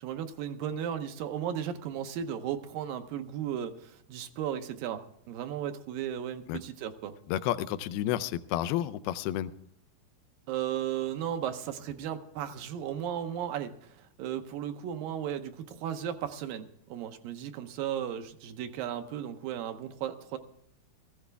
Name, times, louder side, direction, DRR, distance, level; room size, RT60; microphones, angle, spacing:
voice 1, 0.0-5.0 5.3-7.1 10.5-20.4, right 9 dB, 75° right, 8 dB, 2.4 m, -35 dB
voice 2, 7.3-9.5, left 12 dB, 85° left, 13 dB, 2.5 m, -31 dB
16.5 x 15.0 x 3.4 m, 0.69 s
omnidirectional pair, 4.4 m